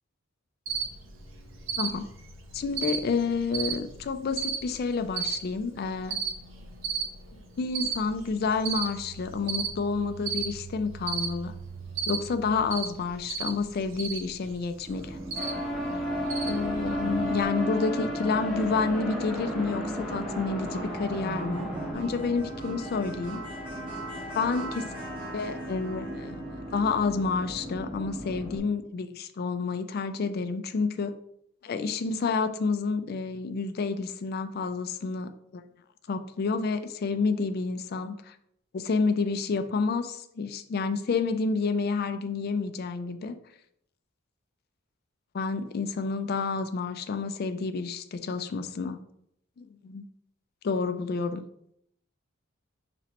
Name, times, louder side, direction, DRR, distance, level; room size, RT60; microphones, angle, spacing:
Cricket, 0.7-17.4, right 6 dB, 65° right, 0.7 m, -36 dB
voice 1, 2.5-6.2 7.3-11.5 12.1-15.2 16.4-23.4 24.4-24.8 25.3-26.4 26.7-31.1 31.6-35.6 36.1-38.3 38.7-43.4 45.3-49.0 49.6-50.0 50.6-51.4, left 4 dB, 50° left, 10 dB, 0.3 m, -29 dB
sound 1, 14.9-28.6, right 1 dB, 25° right, 1.2 m, -38 dB
sound 2, 15.4-21.9, equal, ahead, 0.9 m, -33 dB
5.8 x 3.0 x 2.9 m, 0.74 s
head